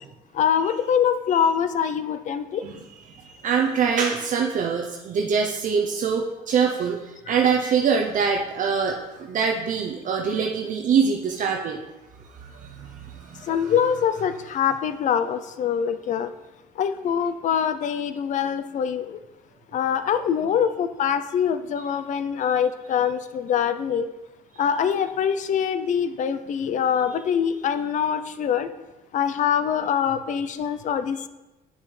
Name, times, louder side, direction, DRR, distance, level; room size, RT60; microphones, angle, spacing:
voice 1, 0.3-2.6 13.4-16.3 16.8-19.2 19.7-24.1 24.6-28.7 29.1-31.3, left 8 dB, 45° left, 11 dB, 0.5 m, -24 dB
voice 2, 3.1-11.8 12.4-13.5, right 6 dB, 50° right, 1 dB, 0.7 m, -24 dB
9.8 x 5.9 x 3.3 m, 1.0 s
cardioid pair, 110°, 17 cm